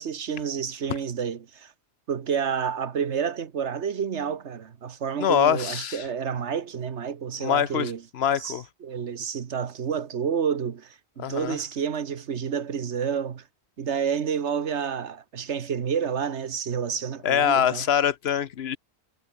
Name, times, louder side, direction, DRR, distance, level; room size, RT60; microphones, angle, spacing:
voice 1, 0.0-1.7 2.1-8.0 8.3-13.4 13.8-17.8, right 7 dB, 85° right, 1.5 m, -29 dB
voice 2, 5.2-6.0 7.4-8.6 11.2-11.6 17.2-18.8, left 9 dB, 70° left, 1.0 m, -24 dB
omnidirectional pair, 1.1 m